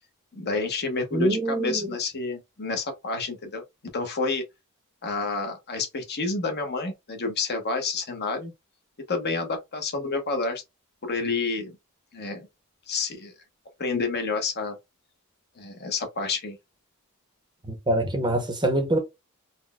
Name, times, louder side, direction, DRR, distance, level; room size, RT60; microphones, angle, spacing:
voice 1, 0.3-3.6 3.9-4.4 5.0-8.5 9.1-10.6 11.0-11.8 12.1-12.5 12.9-13.3 13.8-14.8 15.6-16.6, left 3 dB, 50° left, 0.9 m, -29 dB
voice 2, 1.1-1.9 17.7-19.0, right 1 dB, 20° right, 0.7 m, -25 dB
3.9 x 2.1 x 2.2 m
head